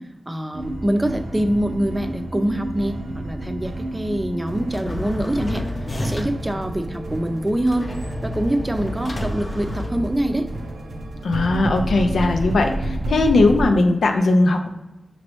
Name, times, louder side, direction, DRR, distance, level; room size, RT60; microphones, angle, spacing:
voice 1, 0.3-5.6 6.0-7.9 8.2-10.5, right 1 dB, 25° right, 6 dB, 0.5 m, -24 dB
sound 1, 0.5-13.7, right 1 dB, 85° right, 0.5 m, -30 dB
sound 2, 4.7-6.5 7.7-10.5, left 1 dB, 50° left, 0.6 m, -30 dB
voice 2, 11.2-14.7, left 2 dB, 90° left, 4 dB, 0.4 m, -18 dB
5.1 x 3.0 x 3.0 m, 0.96 s
cardioid pair, 40°, 0 cm